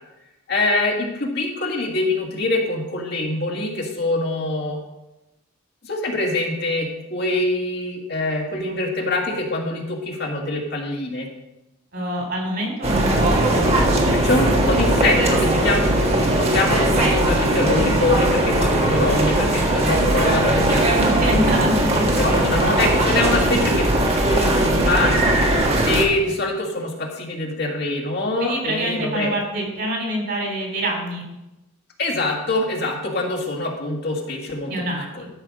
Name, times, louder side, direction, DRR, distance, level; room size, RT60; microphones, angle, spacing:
voice 1, 0.5-4.8 5.8-11.3 14.1-21.7 22.2-25.1 25.9-29.3 32.0-34.7 35.2-35.3, left 2 dB, 50° left, 0 dB, 1.8 m, -24 dB
voice 2, 11.9-13.4 21.0-22.4 28.4-31.2 34.7-35.3, right 1 dB, 50° right, 0 dB, 3.7 m, -26 dB
sound 1, 12.8-26.0, right 1 dB, 30° right, 1.4 m, -19 dB
12.5 x 5.6 x 6.4 m, 0.97 s
head